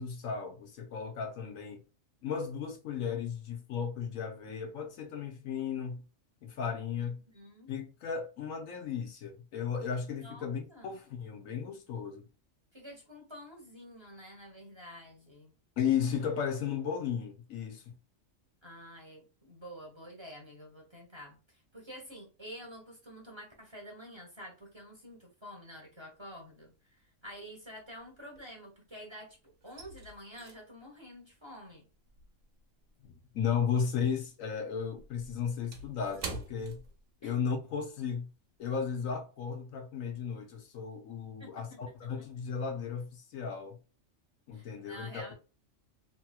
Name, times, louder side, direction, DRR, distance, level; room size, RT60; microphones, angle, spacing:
voice 1, 0.0-1.8 2.2-6.0 6.4-7.2 7.7-12.3 15.8-17.9 33.0-36.8 37.2-38.3 38.6-43.8 44.5-45.2, left 7 dB, 85° left, 1.3 m, -35 dB
voice 2, 7.0-7.7 10.2-10.9 12.7-15.5 18.6-29.4 29.6-31.8 37.2-37.4 41.4-41.8 44.5-45.3, equal, 25° right, 0.9 m, -49 dB
sound 1, 26.2-26.7 27.0-29.0 29.3-34.0 34.2-37.6 37.9-38.1 38.5-38.8, right 4 dB, 85° right, 1.2 m, -47 dB
3.2 x 2.9 x 2.3 m
omnidirectional pair, 1.4 m